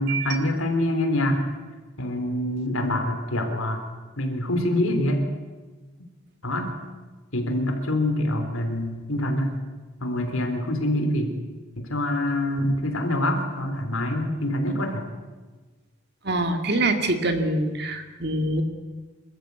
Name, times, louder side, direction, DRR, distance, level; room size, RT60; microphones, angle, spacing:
voice 1, 0.0-1.5 2.0-3.8 4.2-5.2 6.4-6.8 7.3-9.6 10.0-11.4 11.8-15.1, left 1 dB, 80° left, 5 dB, 3.6 m, -25 dB
voice 2, 16.2-18.6, right 2 dB, 50° right, 6 dB, 2.1 m, -25 dB
27.0 x 13.5 x 8.4 m, 1.3 s
head